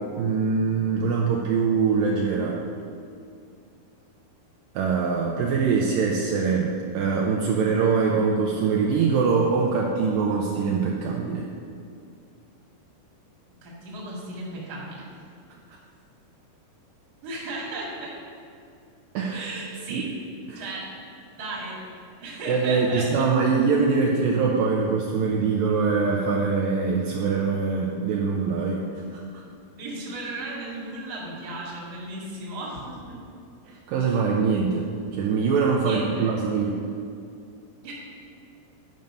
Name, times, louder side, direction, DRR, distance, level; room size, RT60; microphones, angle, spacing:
voice 1, 0.2-2.6 4.8-11.5 19.1-19.5 19.9-20.0 20.5-20.6 22.5-28.8 29.1-29.4 33.7-34.9 35.1-36.7, right 5 dB, 85° right, -2 dB, 2.0 m, -23 dB
voice 2, 13.6-15.1 17.2-18.1 19.3-20.1 20.5-20.9 21.4-21.8 22.2-23.0 29.8-33.1 34.1-34.2 35.8-36.3 37.8-37.9, right 2 dB, 40° right, -5 dB, 1.5 m, -35 dB
9.3 x 5.3 x 5.4 m, 2.4 s
omnidirectional pair, 4.6 m